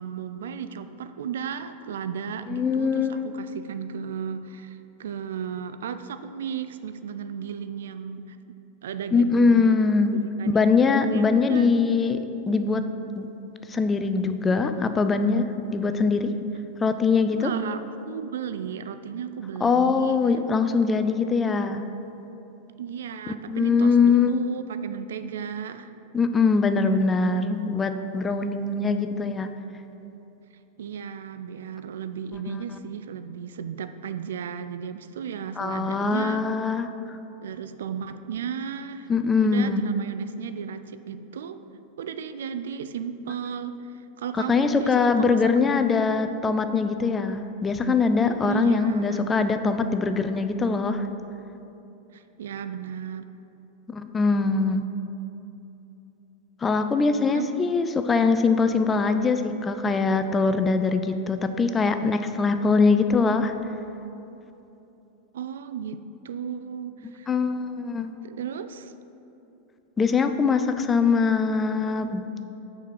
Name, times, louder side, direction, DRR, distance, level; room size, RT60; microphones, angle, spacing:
voice 1, 0.0-8.4 8.8-9.8 10.1-11.7 17.3-20.2 21.7-21.9 22.8-25.9 30.8-36.4 37.4-39.1 39.4-41.6 42.0-45.4 45.7-45.8 48.5-49.2 52.1-53.3 57.3-57.6 65.3-67.3 68.2-68.9, right 7 dB, 60° right, 11 dB, 0.3 m, -34 dB
voice 2, 2.5-3.3 9.1-10.2 10.5-12.2 12.5-12.9 13.1-13.3 13.7-16.3 16.8-17.5 19.6-21.8 23.5-24.4 26.1-29.5 35.6-37.2 39.1-39.9 44.5-51.1 53.9-54.9 56.6-63.5 67.3-68.1 70.0-72.4, left 4 dB, 20° left, 9 dB, 0.4 m, -22 dB
6.5 x 4.7 x 6.0 m, 2.9 s
figure-of-eight pair, 90°, 0 cm